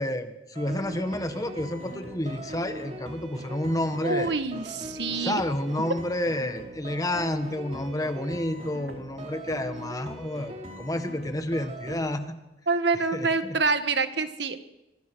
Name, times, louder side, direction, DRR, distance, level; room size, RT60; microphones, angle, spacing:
voice 1, 0.0-4.3 5.1-12.4 13.1-13.5, left 1 dB, 20° left, 8 dB, 1.6 m, -30 dB
sound 1, 0.5-12.1, equal, 35° right, 4.9 m, -40 dB
voice 2, 4.0-5.4 12.7-14.6, right 4 dB, 65° right, 9 dB, 1.7 m, -26 dB
25.0 x 23.5 x 6.4 m, 0.96 s
head